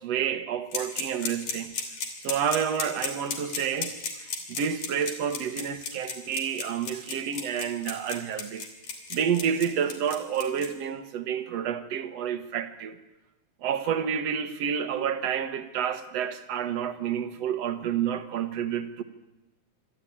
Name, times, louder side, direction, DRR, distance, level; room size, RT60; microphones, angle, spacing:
voice 1, 0.0-1.7 2.2-8.6 9.1-13.0 13.6-19.0, right 8 dB, 60° right, 2.2 m, -29 dB
sound 1, 0.7-10.7, left 6 dB, 80° left, 4.4 m, -33 dB
26.0 x 13.0 x 10.0 m
omnidirectional pair, 3.6 m